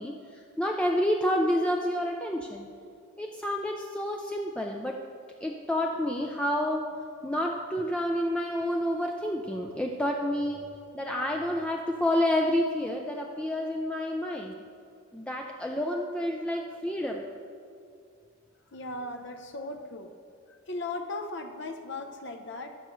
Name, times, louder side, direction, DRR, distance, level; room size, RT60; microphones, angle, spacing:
voice 1, 0.0-2.7 3.2-5.0 5.4-10.7 10.9-14.6 15.1-17.3, left 1 dB, 5° left, 1 dB, 0.4 m, -29 dB
voice 2, 18.7-20.1 20.5-22.8, left 2 dB, 55° left, 6 dB, 0.7 m, -37 dB
14.5 x 6.5 x 3.1 m, 2.4 s
head